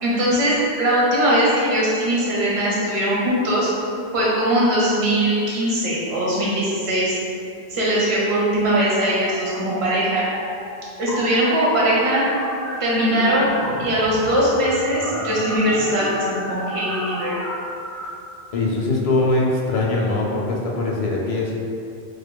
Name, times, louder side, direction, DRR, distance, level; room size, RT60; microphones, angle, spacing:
voice 1, 0.0-3.7 4.1-7.2 7.7-10.3 11.0-12.2 12.8-13.5 13.8-17.4, right 1 dB, 70° right, -7 dB, 1.1 m, -20 dB
sound 1, 8.8-9.8 10.0-18.1, equal, ahead, 1.0 m, -32 dB
voice 2, 18.5-21.6, left 2 dB, 65° left, -3 dB, 0.3 m, -22 dB
4.7 x 2.1 x 2.2 m, 2.5 s
omnidirectional pair, 1.1 m